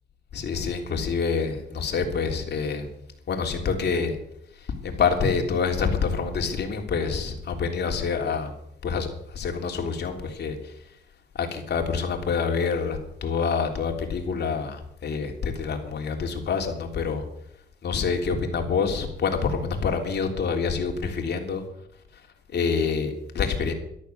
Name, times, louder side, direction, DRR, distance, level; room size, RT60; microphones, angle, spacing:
voice 1, 0.3-2.9 3.3-4.2 4.6-8.5 8.8-10.7 11.3-17.2 17.8-21.6 22.1-22.2 22.5-23.7, left 5 dB, 55° left, 3 dB, 3.4 m, -27 dB
13.5 x 12.5 x 6.9 m, 0.75 s
cardioid pair, 90°, 20 cm